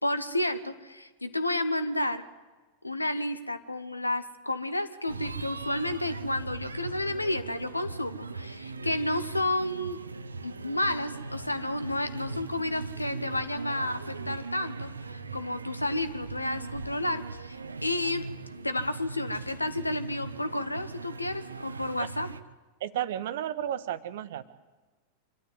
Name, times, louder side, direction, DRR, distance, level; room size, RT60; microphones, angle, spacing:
voice 1, 0.0-2.2 2.8-10.0 10.4-18.2 18.6-22.3, left 1 dB, 85° left, 12 dB, 1.1 m, -31 dB
sound 1, 5.1-22.4, right 3 dB, 75° right, 0.8 m, -39 dB
voice 2, 22.8-24.5, right 11 dB, 55° right, 12 dB, 1.2 m, -33 dB
25.5 x 12.5 x 9.6 m, 1.3 s
figure-of-eight pair, 90°, 0 cm